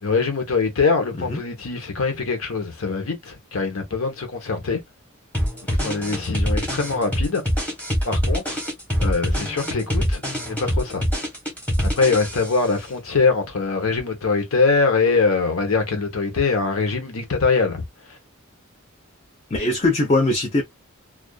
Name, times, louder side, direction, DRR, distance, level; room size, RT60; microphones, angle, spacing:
voice 1, 0.0-4.8 5.7-7.4 8.0-8.6 9.0-10.2 10.5-11.0 11.9-18.2, left 4 dB, 75° left, 0.9 m, -23 dB
sound 1, 5.3-12.7, equal, 10° left, 0.9 m, -24 dB
voice 2, 19.5-20.6, left 2 dB, 30° left, 0.5 m, -21 dB
2.4 x 2.4 x 2.2 m
head